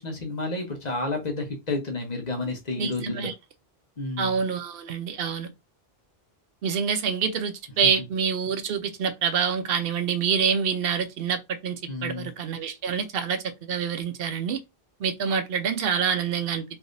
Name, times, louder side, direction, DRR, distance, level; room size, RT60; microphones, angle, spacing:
voice 1, 0.0-3.3 4.0-4.4 7.8-7.9 11.9-12.3, left 2 dB, 45° left, 0.9 m, -31 dB
voice 2, 2.8-3.3 4.2-5.5 6.6-14.6 15.0-16.6, right 6 dB, 70° right, 0.7 m, -26 dB
3.3 x 2.7 x 2.5 m
omnidirectional pair, 1.0 m